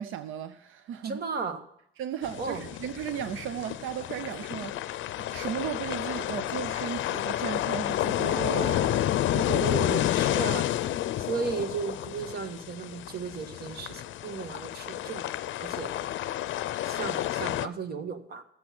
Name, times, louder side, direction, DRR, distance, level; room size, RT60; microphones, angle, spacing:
voice 1, 0.0-1.2 2.0-8.3, right 9 dB, 85° right, 0.6 m, -36 dB
voice 2, 1.0-1.6 2.4-2.6 8.2-10.7 11.2-15.9 16.8-18.4, right 5 dB, 55° right, 1.5 m, -35 dB
sound 1, 2.2-17.7, left 13 dB, 75° left, 0.5 m, -30 dB
13.0 x 8.0 x 6.0 m
cardioid pair, 90°, 20 cm